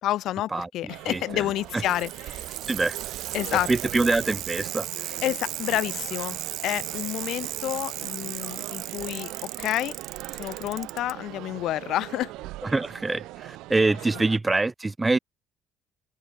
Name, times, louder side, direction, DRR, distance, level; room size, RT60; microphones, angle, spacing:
voice 1, 0.0-2.5 3.3-3.7 5.2-6.4 6.6-10.0 10.4-12.3, left 14 dB, 65° left, 2.6 m, -29 dB
sound 1, 0.9-14.4, right 18 dB, 85° right, 3.3 m, -41 dB
voice 2, 1.0-1.5 1.7-1.8 2.7-3.0 3.7-5.2 12.6-15.2, right 3 dB, 15° right, 1.3 m, -25 dB
Bicycle, 1.5-11.1 12.2-12.3, right 13 dB, 65° right, 5.8 m, -35 dB
cardioid pair, 145°, 0 cm